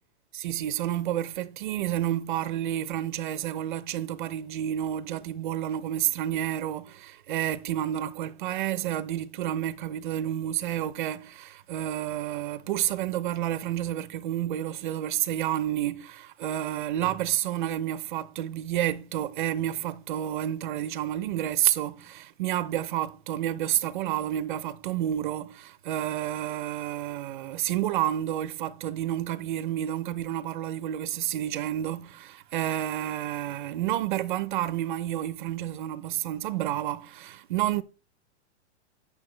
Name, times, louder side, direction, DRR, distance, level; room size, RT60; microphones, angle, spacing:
voice 1, 0.3-37.8, right 12 dB, 45° right, 0.6 m, -30 dB
9.1 x 6.7 x 3.2 m
supercardioid pair, 170°, 35 cm